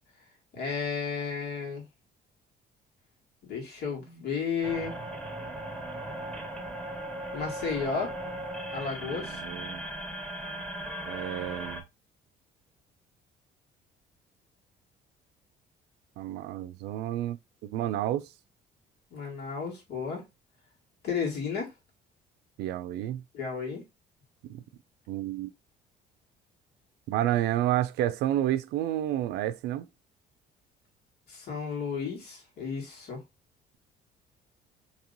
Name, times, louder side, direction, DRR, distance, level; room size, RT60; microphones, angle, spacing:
voice 1, 0.5-1.8 3.4-4.9 7.3-8.1 8.7-9.4 19.1-20.2 21.0-21.7 23.3-23.8 31.3-33.2, left 5 dB, 75° left, 1.8 m, -33 dB
sound 1, 4.6-11.8, right 1 dB, 5° left, 1.3 m, -37 dB
voice 2, 9.0-9.8 11.1-11.8 16.2-17.4 17.6-18.3 22.6-23.2 24.4-24.6 25.1-25.5 27.1-29.9, right 13 dB, 80° right, 0.4 m, -30 dB
2.9 x 2.9 x 3.9 m
cardioid pair, 110°, 17 cm